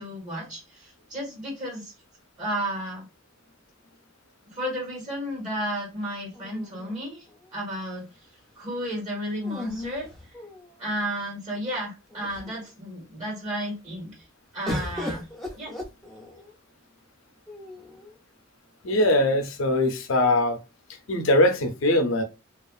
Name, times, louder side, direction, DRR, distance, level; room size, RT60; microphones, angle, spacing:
voice 1, 0.0-1.9 2.4-3.0 4.5-7.2 7.5-8.1 8.5-10.1 10.8-14.1 14.5-15.2 15.5-15.7, equal, 40° right, 1.6 m, -32 dB
sound 1, 6.3-7.4 9.4-11.0 11.7-11.8 12.1-12.7 14.7-16.5 17.5-18.2, left 1 dB, ahead, 0.5 m, -37 dB
voice 2, 18.8-20.6 21.1-22.2, left 1 dB, 75° left, 0.6 m, -21 dB
2.9 x 2.3 x 2.3 m
head